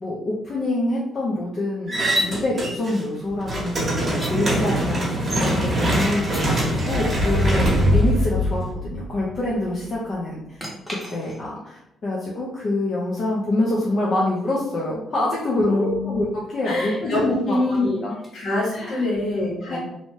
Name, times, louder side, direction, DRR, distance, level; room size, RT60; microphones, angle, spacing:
voice 1, 0.0-5.0 5.3-6.6 6.9-10.4 11.1-18.1 18.7-19.0 19.7-19.8, left 1 dB, 45° left, -5 dB, 0.6 m, -26 dB
sound 1, 1.9-3.0 3.3-8.7, right 1 dB, 35° right, 1.0 m, -24 dB
sound 2, 2.0-2.3 4.1-4.3 6.1-6.4 10.6-11.6 14.8-14.9 16.8-19.0, left 1 dB, 5° left, 0.9 m, -33 dB
voice 2, 4.6-5.6 15.6-16.2 16.6-18.0 18.3-19.8, left 2 dB, 70° left, -5 dB, 1.3 m, -25 dB
sound 3, 6.1-9.7, left 1 dB, 55° right, 0.6 m, -23 dB
2.7 x 2.1 x 3.1 m, 0.81 s
cardioid pair, 90°, 0 cm